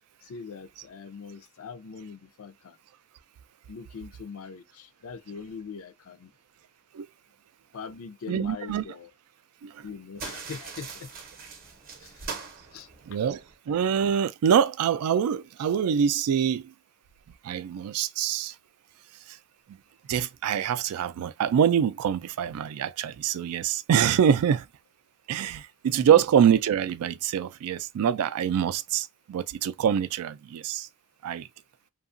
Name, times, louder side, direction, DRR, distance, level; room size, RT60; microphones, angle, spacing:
voice 1, 0.2-2.8 3.7-6.3 7.7-9.1 9.8-11.1 12.0-12.2 12.7-12.9 26.0-26.2, left 5 dB, 70° left, 0.4 m, -42 dB
voice 2, 8.3-8.8 9.6-9.8 13.1-16.7 17.4-18.5 19.3-19.4 19.7-19.8 20.1-24.7 25.3-30.9 31.2-31.5, right 8 dB, 85° right, 0.3 m, -25 dB
sound 1, 10.2-13.5, right 5 dB, 40° right, 0.7 m, -41 dB
2.8 x 2.3 x 2.4 m
head